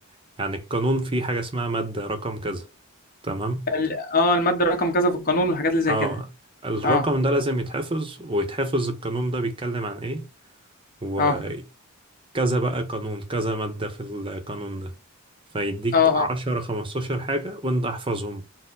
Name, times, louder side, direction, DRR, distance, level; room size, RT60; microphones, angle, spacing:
voice 1, 0.4-2.7 3.2-3.7 5.9-6.3 6.6-10.2 11.0-11.6 12.3-14.9 15.5-18.4, right 1 dB, 25° right, 0.7 m, -27 dB
voice 2, 3.7-6.1 6.8-7.0 11.2-11.4 15.9-16.2, left 2 dB, 40° left, 0.9 m, -21 dB
4.4 x 2.0 x 3.8 m
head